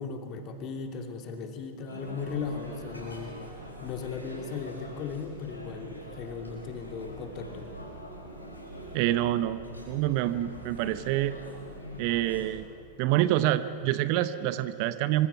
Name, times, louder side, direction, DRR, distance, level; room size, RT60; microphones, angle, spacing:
voice 1, 0.0-3.3 3.8-7.7, left 5 dB, 35° left, 5 dB, 2.5 m, -37 dB
sound 1, 1.9-12.5, equal, 85° left, 5.9 m, -43 dB
voice 2, 8.9-9.6 9.9-11.3 12.0-12.7 13.0-15.3, right 14 dB, 45° right, 14 dB, 0.9 m, -26 dB
26.0 x 24.5 x 6.0 m, 2.4 s
figure-of-eight pair, 90°, 0 cm